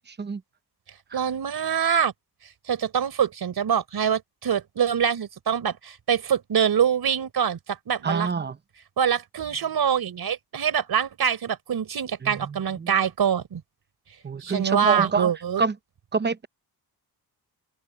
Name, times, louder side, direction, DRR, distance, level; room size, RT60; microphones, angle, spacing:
voice 1, 0.1-0.4 1.1-1.2 8.0-8.6 12.2-12.9 14.2-15.3 15.6-15.7 16.1-16.5, right 5 dB, 25° right, 0.8 m, -27 dB
voice 2, 1.1-2.1 2.7-8.3 9.0-13.6 14.4-15.6, right 8 dB, 70° right, 4.0 m, -24 dB
open air
wide cardioid pair, 135°, 39 cm